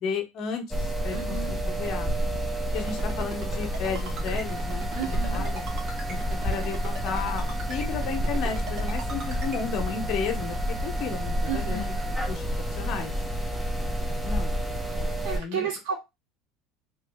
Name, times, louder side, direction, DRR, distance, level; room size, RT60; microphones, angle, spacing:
voice 1, 0.0-2.1 2.7-5.6 6.1-6.2 6.4-13.1 14.2-14.5 15.0-15.7, left 6 dB, 60° left, 5 dB, 1.0 m, -34 dB
sound 1, 0.7-15.4, equal, ahead, 0.8 m, -29 dB
voice 2, 1.1-1.5 4.9-5.4 11.5-11.8 15.2-16.0, right 7 dB, 70° right, -2 dB, 1.6 m, -32 dB
Ringtone, 2.8-9.6, right 2 dB, 55° right, 1.3 m, -40 dB
3.0 x 2.7 x 3.4 m, 0.22 s
supercardioid pair, 95°, 0 cm